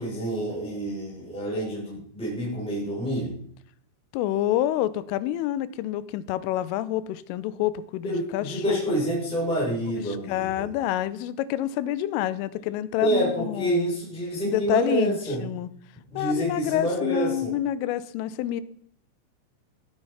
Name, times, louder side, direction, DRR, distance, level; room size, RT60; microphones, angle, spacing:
voice 1, 0.0-3.3 8.0-10.7 13.0-15.4 16.1-17.5, right 1 dB, ahead, -5 dB, 5.8 m, -28 dB
voice 2, 4.1-8.8 10.1-13.9 14.4-15.7 16.1-18.6, left 13 dB, 85° left, 16 dB, 3.3 m, -28 dB
16.0 x 10.5 x 5.7 m, 0.63 s
omnidirectional pair, 5.8 m